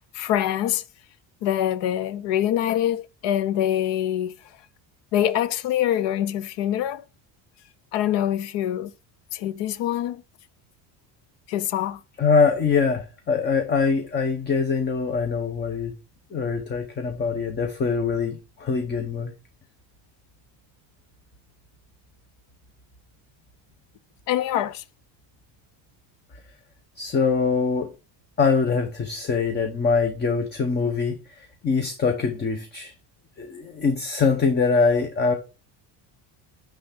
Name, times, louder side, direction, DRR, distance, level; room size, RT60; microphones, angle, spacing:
voice 1, 0.1-0.8 1.4-4.3 5.1-7.0 7.9-8.9 9.3-10.2 11.5-12.0 24.3-24.8, left 11 dB, 65° left, 0.7 m, -24 dB
voice 2, 12.2-15.9 16.3-19.3 27.0-27.9 28.4-32.9 33.4-35.4, left 5 dB, 20° left, 0.8 m, -23 dB
9.5 x 3.4 x 5.6 m
cardioid pair, 170°, 46 cm